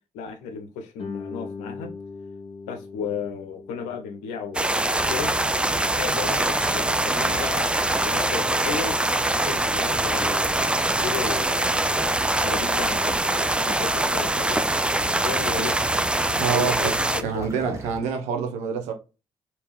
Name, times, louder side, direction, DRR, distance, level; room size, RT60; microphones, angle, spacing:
voice 1, 0.1-1.9 2.7-5.3 6.0-7.7 8.0-9.0 9.3-14.6 15.2-15.8 16.5-17.5, left 6 dB, 85° left, 0.7 m, -34 dB
Guitar, 1.0-6.3, left 4 dB, 55° left, 1.0 m, -41 dB
sound 1, 4.5-17.2, right 1 dB, 10° right, 0.4 m, -23 dB
sound 2, 4.9-18.0, right 1 dB, 25° right, 1.3 m, -38 dB
voice 2, 16.4-16.9 17.2-18.9, right 6 dB, 85° right, 0.7 m, -26 dB
3.5 x 2.8 x 3.0 m
hypercardioid pair, 45°, 12 cm